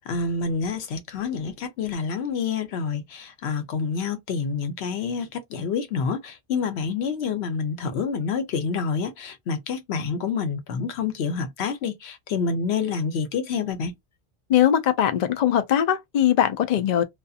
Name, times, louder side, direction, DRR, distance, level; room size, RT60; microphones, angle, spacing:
voice 1, 0.0-13.9, left 5 dB, 85° left, 0.9 m, -28 dB
voice 2, 14.5-17.0, left 10 dB, 55° left, 0.5 m, -20 dB
2.4 x 2.4 x 2.6 m
omnidirectional pair, 1.1 m